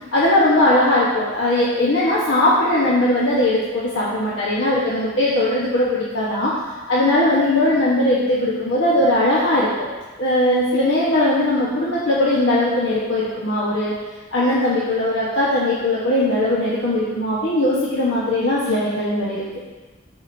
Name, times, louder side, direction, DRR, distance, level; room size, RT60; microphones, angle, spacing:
voice 1, 0.1-6.5 6.9-9.9 10.2-13.9 14.3-19.4, left 1 dB, 70° left, -8 dB, 1.4 m, -19 dB
15.0 x 5.0 x 2.8 m, 1.2 s
head